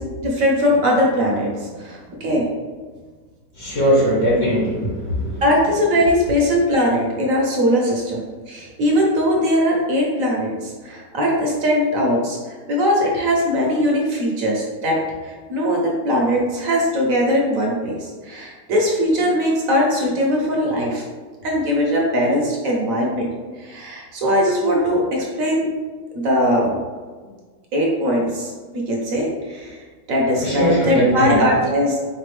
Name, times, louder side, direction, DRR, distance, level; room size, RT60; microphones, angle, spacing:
voice 1, 0.2-2.5 5.4-15.0 15.2-21.0 21.4-23.3 23.6-25.7 26.1-26.8 27.7-29.8 30.1-32.0, equal, 60° right, -2 dB, 1.2 m, -20 dB
voice 2, 3.5-5.4 30.3-31.4, equal, 50° left, -6 dB, 1.6 m, -20 dB
4.3 x 3.4 x 3.3 m, 1.4 s
omnidirectional pair, 1.8 m